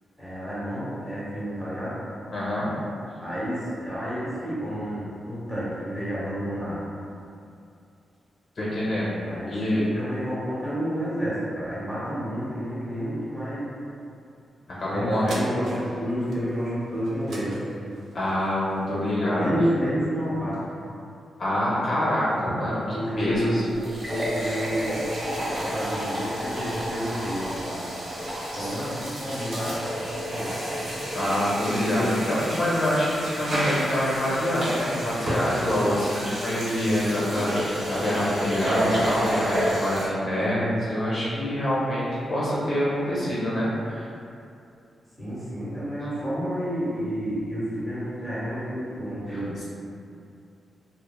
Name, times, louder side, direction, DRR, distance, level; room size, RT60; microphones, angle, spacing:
voice 1, 0.2-2.0 3.2-6.8 9.3-13.7 14.9-17.6 19.3-20.6 22.9-25.1 25.4-28.0 28.5-30.6 45.2-49.6, equal, 10° right, -11 dB, 0.8 m, -30 dB
voice 2, 2.3-2.7 8.6-9.1 9.4-9.8 14.7-15.3 18.1-19.5 21.4-23.6 28.6-28.8 31.1-44.1 49.3-49.4, left 1 dB, 45° left, -8 dB, 0.5 m, -26 dB
sound 1, 15.3-20.0 20.5-20.6, right 2 dB, 70° right, 0.4 m, -42 dB
sound 2, 23.3-23.4 23.7-40.1, equal, 55° right, 0.8 m, -30 dB
3.0 x 2.0 x 2.2 m, 2.6 s
wide cardioid pair, 145°, 0 cm